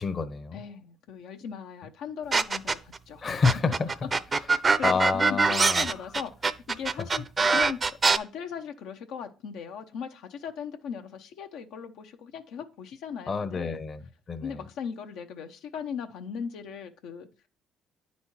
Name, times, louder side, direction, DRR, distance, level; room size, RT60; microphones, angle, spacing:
voice 1, 0.0-0.6 3.2-4.1 4.7-5.9 13.3-14.0 14.3-14.6, left 4 dB, 40° left, 0.8 m, -28 dB
voice 2, 0.5-3.3 4.3-13.8 14.4-17.3, left 7 dB, 80° left, 0.7 m, -39 dB
sound 1, 2.3-3.0 3.4-8.2, right 4 dB, 30° right, 0.5 m, -23 dB
9.4 x 4.3 x 4.4 m
cardioid pair, 90°, 0 cm